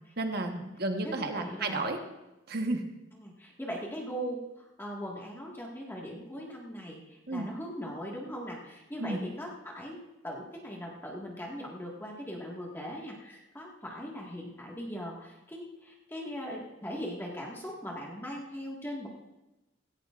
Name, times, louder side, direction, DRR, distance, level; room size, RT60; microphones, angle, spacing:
voice 1, 0.2-2.0 2.5-2.8 7.3-7.5 9.0-9.2, right 2 dB, 55° right, 5 dB, 1.3 m, -32 dB
voice 2, 1.0-1.9 3.1-10.0 10.2-19.1, equal, 10° left, -3 dB, 1.8 m, -40 dB
16.5 x 16.5 x 2.5 m, 1.0 s
head